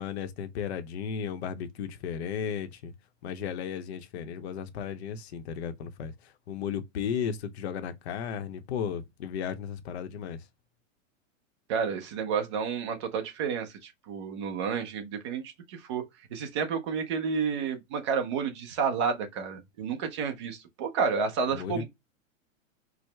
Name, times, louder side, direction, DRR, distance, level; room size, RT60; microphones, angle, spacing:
voice 1, 0.0-2.9 3.2-10.4 21.5-21.8, left 7 dB, 55° left, 0.7 m, -35 dB
voice 2, 11.7-15.4 15.7-16.0 16.3-21.8, right 6 dB, 25° right, 0.4 m, -30 dB
4.6 x 2.0 x 3.2 m
supercardioid pair, 160°, 39 cm